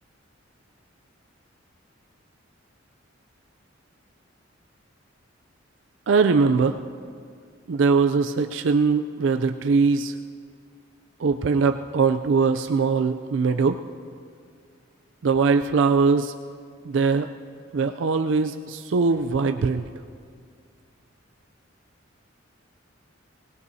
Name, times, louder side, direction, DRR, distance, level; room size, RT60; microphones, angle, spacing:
voice 1, 6.1-6.8 7.7-10.2 11.2-13.8 15.2-16.3 16.8-17.3 17.7-19.8, right 4 dB, 65° right, 7 dB, 0.4 m, -21 dB
24.0 x 18.5 x 2.8 m, 2.2 s
head